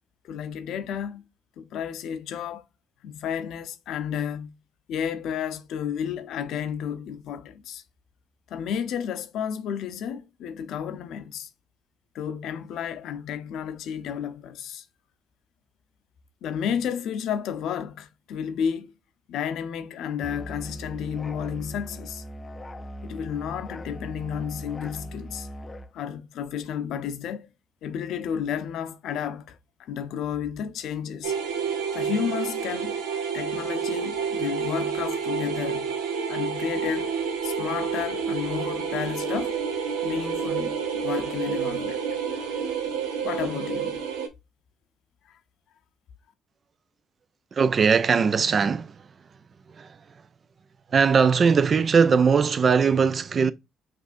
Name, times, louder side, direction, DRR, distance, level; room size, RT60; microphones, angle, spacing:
voice 1, 0.2-1.2 1.6-2.6 3.0-4.5 4.9-7.8 8.5-11.5 12.1-14.8 16.4-18.9 19.3-22.2 23.0-25.5 25.9-27.5 27.8-31.3 31.9-32.9 33.3-36.0 36.3-37.1 37.4-39.6 40.0-42.0 43.2-44.0, left 8 dB, 75° left, 0.6 m, -32 dB
Musical instrument, 20.2-25.9, equal, 25° left, 0.5 m, -39 dB
sound 1, 31.2-44.3, right 6 dB, 90° right, 0.7 m, -29 dB
voice 2, 47.5-49.1 49.7-50.0 50.9-53.5, right 5 dB, 45° right, 0.5 m, -20 dB
6.0 x 2.6 x 2.5 m
supercardioid pair, 65°, 0 cm